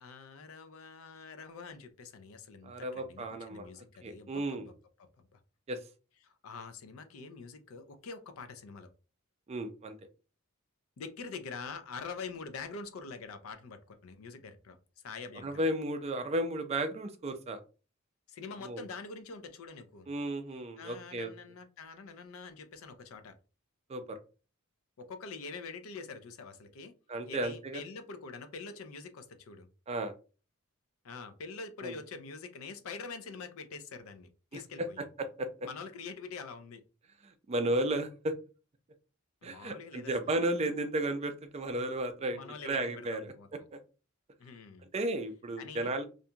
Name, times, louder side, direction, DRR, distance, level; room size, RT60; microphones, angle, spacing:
voice 1, 0.0-4.6 5.2-5.4 6.2-8.9 11.0-14.8 15.0-15.6 18.3-20.1 20.8-23.3 25.0-26.9 27.3-29.7 31.0-35.0 35.6-36.8 39.4-40.1 42.3-43.5 44.4-44.9 45.6-45.9, left 4 dB, 80° left, 9 dB, 0.4 m, -45 dB
voice 2, 2.6-3.7 4.0-4.7 5.7-5.8 9.5-9.9 15.4-17.6 18.6-18.8 20.1-21.3 23.9-24.2 27.1-27.8 29.9-30.1 31.8-32.0 34.5-34.6 35.0-35.7 37.2-38.3 39.4-42.4 42.6-43.3 43.7-43.8 44.9-46.1, right 1 dB, 30° right, 8 dB, 0.4 m, -34 dB
2.5 x 2.2 x 2.7 m, 0.34 s
head